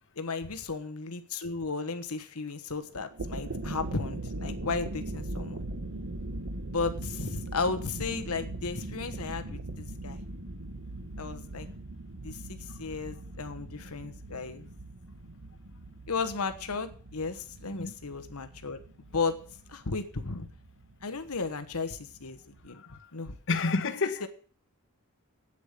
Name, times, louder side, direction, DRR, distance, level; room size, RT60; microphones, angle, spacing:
voice 1, 0.2-5.7 6.7-10.2 11.2-11.7 12.2-14.7 16.1-18.8 19.1-19.4 19.7-20.5 21.0-22.8 23.1-23.4 24.2-24.3, left 4 dB, 75° left, 1.3 m, -34 dB
sound 1, 3.0-22.7, right 2 dB, 65° right, 1.2 m, -40 dB
voice 2, 23.5-24.3, left 3 dB, 60° left, 1.2 m, -29 dB
8.6 x 8.6 x 8.2 m
head